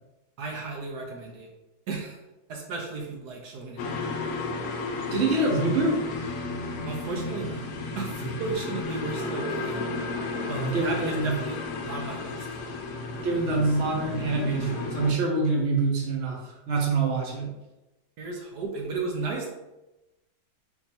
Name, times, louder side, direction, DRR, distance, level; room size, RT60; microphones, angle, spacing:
voice 1, 0.4-1.5 1.9-2.2 2.5-4.1 6.9-7.7 8.0-9.8 10.5-11.6 11.9-12.5 13.2-13.4 14.0-14.1 18.2-19.5, right 4 dB, 65° right, 0 dB, 1.2 m, -34 dB
sound 1, 3.8-15.1, left 3 dB, 65° left, 1.0 m, -33 dB
voice 2, 5.1-6.0 8.2-8.5 10.5-11.3 13.2-17.5, right 3 dB, 45° right, -1 dB, 1.0 m, -26 dB
4.5 x 2.7 x 4.2 m, 1.0 s
omnidirectional pair, 1.9 m